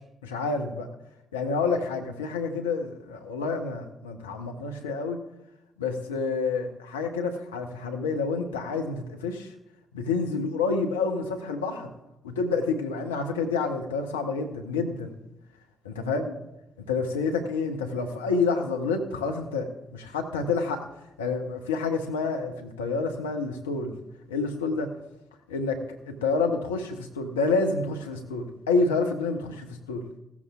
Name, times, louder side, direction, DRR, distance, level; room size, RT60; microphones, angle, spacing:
voice 1, 0.2-0.9 1.3-5.2 5.8-9.5 9.9-11.9 12.2-15.2 15.8-16.3 16.9-20.9 21.2-23.9 24.3-24.9 25.5-30.0, left 4 dB, 85° left, 4 dB, 0.9 m, -28 dB
16.5 x 13.5 x 2.4 m, 0.87 s
figure-of-eight pair, 40°, 0 cm